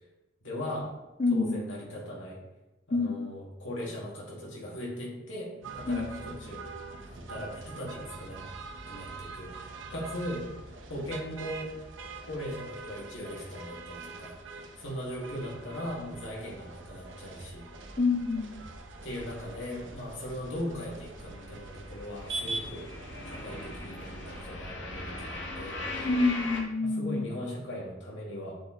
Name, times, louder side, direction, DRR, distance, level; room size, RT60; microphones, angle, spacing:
voice 1, 0.4-0.9 1.3-2.4 2.9-6.7 7.0-8.4 8.9-10.5 10.9-11.7 12.2-14.4 14.8-17.7 19.0-22.9 23.3-25.8 26.8-28.5, equal, 90° left, -3 dB, 2.0 m, -39 dB
voice 2, 1.2-1.6 2.9-3.2 5.9-6.1 18.0-18.5 26.0-27.3, left 3 dB, 35° left, 4 dB, 0.5 m, -27 dB
sound 1, 5.6-24.4, right 3 dB, 90° right, 0.8 m, -43 dB
sound 2, 17.8-19.9 20.2-26.6, left 2 dB, 75° left, 1.1 m, -41 dB
7.5 x 4.3 x 3.8 m, 1.0 s
head